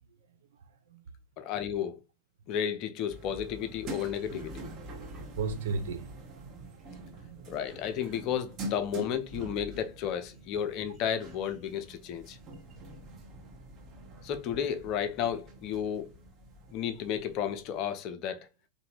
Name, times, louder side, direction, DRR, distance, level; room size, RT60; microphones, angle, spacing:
voice 1, 1.4-2.0 2.5-4.7 7.5-12.4 14.2-16.1 16.7-18.5, left 8 dB, 40° left, 0.4 m, -33 dB
sound 1, 3.1-17.9, right 1 dB, 35° right, 0.7 m, -45 dB
voice 2, 5.3-7.5 12.9-13.0, right 4 dB, 60° right, 0.4 m, -37 dB
2.8 x 2.4 x 3.0 m
figure-of-eight pair, 90°, 0 cm